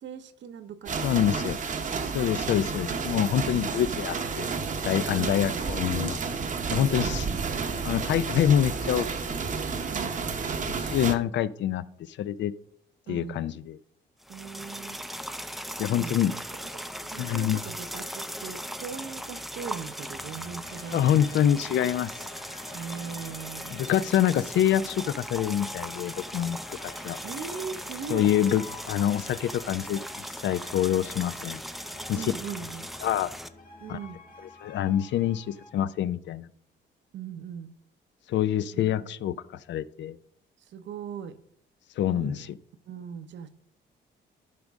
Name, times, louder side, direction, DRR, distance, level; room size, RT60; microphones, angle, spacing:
voice 1, 0.0-1.1 2.1-2.9 3.3-3.7 5.1-5.6 6.7-7.4 9.9-10.7 13.1-13.5 14.3-15.0 15.6-16.4 16.7-16.8 17.1-21.2 22.7-23.9 27.2-28.3 32.1-32.8 33.8-34.2 37.1-37.8 38.7-39.2 40.6-41.4 42.1-42.5 42.9-43.5, right 7 dB, 65° right, 0.8 m, -40 dB
sound 1, 0.9-11.2, right 5 dB, 40° right, 0.8 m, -31 dB
voice 2, 1.0-1.6 2.1-4.5 4.8-6.2 6.7-7.3 7.8-9.3 10.8-12.5 13.1-13.8 15.8-16.3 17.2-17.6 20.9-22.1 23.7-26.8 27.0-27.2 28.1-30.0 30.4-31.6 32.1-32.3 33.0-33.3 33.9-34.0 34.6-36.5 38.3-39.3 39.7-40.2 42.0-42.5, left 10 dB, 65° left, 0.5 m, -26 dB
sound 2, 14.2-33.5, equal, ahead, 0.5 m, -39 dB
sound 3, 20.1-35.7, left 4 dB, 45° left, 1.8 m, -49 dB
12.0 x 5.1 x 3.6 m
cardioid pair, 90°, 20 cm